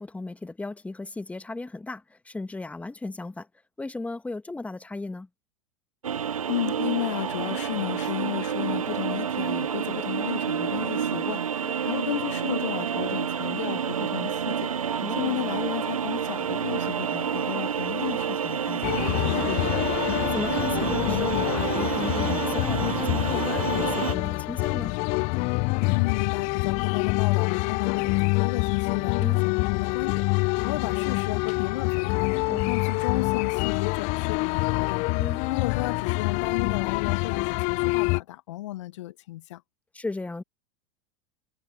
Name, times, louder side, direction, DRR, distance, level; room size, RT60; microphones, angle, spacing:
voice 1, 0.0-3.5 3.8-5.3 11.6-11.8 15.0-15.4 17.5-17.7 20.2-24.9 29.2-29.4 32.5-32.8 35.2-35.4 39.9-40.4, left 2 dB, 10° left, 2.0 m, -36 dB
sound 1, 6.0-24.1, right 8 dB, 80° right, 0.7 m, -29 dB
voice 2, 6.5-19.8 25.9-32.3 32.7-39.6, left 15 dB, 60° left, 1.6 m, -34 dB
sound 2, 18.8-38.2, left 29 dB, 45° left, 0.6 m, -26 dB
figure-of-eight pair, 90°, 17 cm